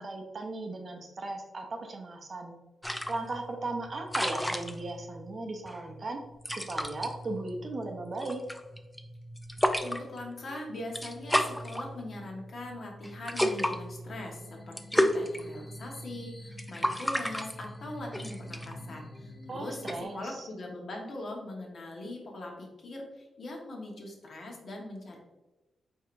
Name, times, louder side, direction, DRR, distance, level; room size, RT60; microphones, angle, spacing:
voice 1, 0.0-2.5 3.1-6.2 6.7-8.4 19.5-20.5, right 2 dB, 35° right, 3 dB, 0.6 m, -37 dB
sound 1, 2.8-20.0, equal, 5° left, 0.3 m, -34 dB
voice 2, 9.8-19.8 20.1-25.2, left 1 dB, 50° left, 0 dB, 1.1 m, -41 dB
sound 2, 14.1-20.0, left 3 dB, 20° left, 0.8 m, -51 dB
4.6 x 4.6 x 2.5 m, 1.1 s
wide cardioid pair, 150°, 0 cm